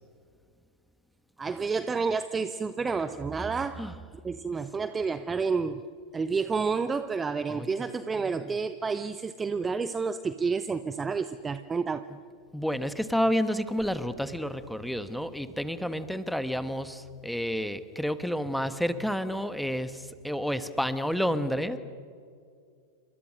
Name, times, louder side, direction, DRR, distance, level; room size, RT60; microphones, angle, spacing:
voice 1, 1.4-3.8 4.2-5.9 6.1-12.1, right 5 dB, 15° right, 13 dB, 0.7 m, -30 dB
voice 2, 7.5-7.9 8.1-8.6 12.5-21.8, equal, ahead, 12 dB, 1.4 m, -30 dB
28.5 x 24.5 x 6.4 m, 2.3 s
figure-of-eight pair, 90°, 0 cm